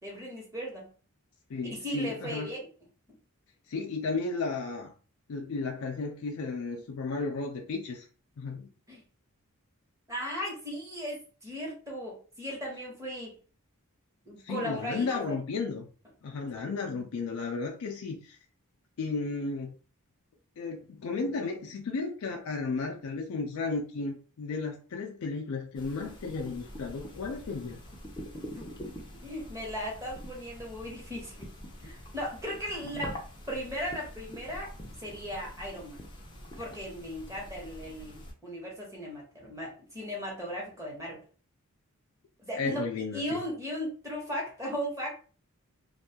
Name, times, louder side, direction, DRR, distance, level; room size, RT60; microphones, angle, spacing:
voice 1, 0.0-0.9 1.7-2.7 8.9-9.0 10.1-13.4 14.3-15.3 28.4-28.7 29.0-31.5 31.8-33.2 33.5-34.7 35.0-36.0 36.6-41.2 42.4-42.8 43.1-45.1, equal, 15° right, -2 dB, 1.0 m, -37 dB
voice 2, 1.5-2.5 3.7-4.9 5.3-8.1 8.4-8.7 14.4-15.9 16.2-18.4 19.0-19.7 20.6-27.8 32.9-33.1 42.6-43.4, left 4 dB, 70° left, 2 dB, 0.4 m, -34 dB
sound 1, 25.7-38.3, equal, 20° left, 0.5 m, -45 dB
2.5 x 2.3 x 2.8 m, 0.38 s
head